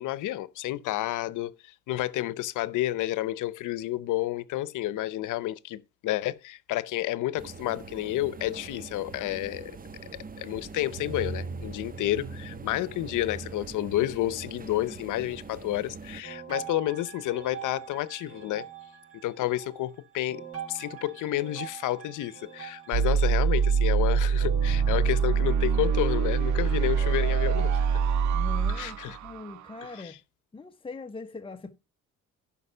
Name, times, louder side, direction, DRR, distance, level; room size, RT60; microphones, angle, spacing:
voice 1, 0.0-1.5 1.9-9.7 10.1-18.7 19.2-20.4 20.7-28.0 28.8-29.2 30.0-30.1, left 15 dB, 85° left, 0.7 m, -30 dB
sound 1, 7.4-16.2, right 4 dB, 30° right, 1.1 m, -44 dB
sound 2, 11.0-14.8 15.0-15.7 16.2-27.6, right 6 dB, 50° right, 3.7 m, -43 dB
sound 3, 22.9-29.9, right 6 dB, 70° right, 0.7 m, -24 dB
voice 2, 28.3-30.2 30.5-31.7, left 4 dB, 15° left, 0.9 m, -41 dB
11.0 x 5.7 x 5.5 m
cardioid pair, 90°, 30 cm